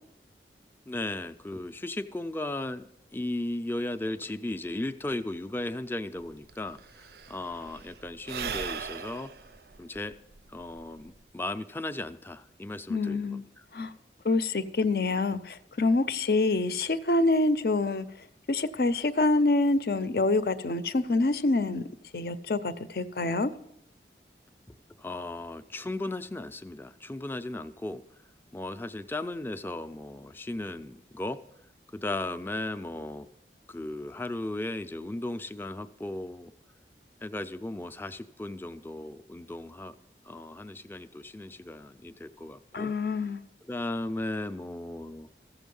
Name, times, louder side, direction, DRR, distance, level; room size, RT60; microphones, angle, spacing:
voice 1, 0.9-2.8 3.1-9.3 9.8-10.1 10.5-13.6 25.0-28.0 28.5-31.4 31.9-33.3 33.7-36.5 37.2-39.9 40.2-42.9 43.6-45.3, left 2 dB, 10° left, 0.4 m, -36 dB
Sigh / Breathing, 6.2-6.3 6.5-11.2, right 6 dB, 65° right, 0.5 m, -39 dB
voice 2, 12.9-13.4 13.7-13.9 14.2-18.1 18.5-21.8 22.1-23.5 42.7-43.4, left 2 dB, 60° left, 0.5 m, -26 dB
14.5 x 7.1 x 5.4 m
head